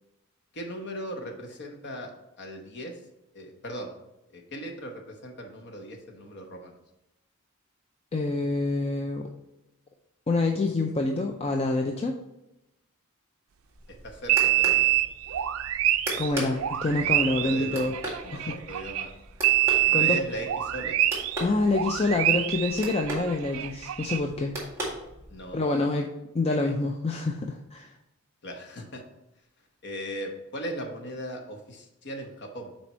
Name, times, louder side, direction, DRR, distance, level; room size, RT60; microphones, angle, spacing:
voice 1, 0.5-2.1 2.4-3.0 3.3-3.9 4.3-6.7 13.9-14.9 17.0-17.2 17.4-17.8 18.2-19.1 19.8-21.0 25.3-25.8 26.5-26.6 28.4-29.0 29.8-32.7, equal, 50° left, 3 dB, 1.0 m, -38 dB
voice 2, 8.1-9.3 10.3-12.2 16.2-17.9 18.3-18.5 19.9-20.2 21.4-24.5 25.5-26.1 26.3-27.9, left 2 dB, 30° left, 3 dB, 0.4 m, -27 dB
sound 1, 13.6-25.6, right 1 dB, 15° right, 1.9 m, -39 dB
sound 2, 14.3-19.1 19.4-21.4 21.7-24.2, right 14 dB, 70° right, 0.4 m, -26 dB
6.0 x 4.3 x 4.3 m, 0.90 s
head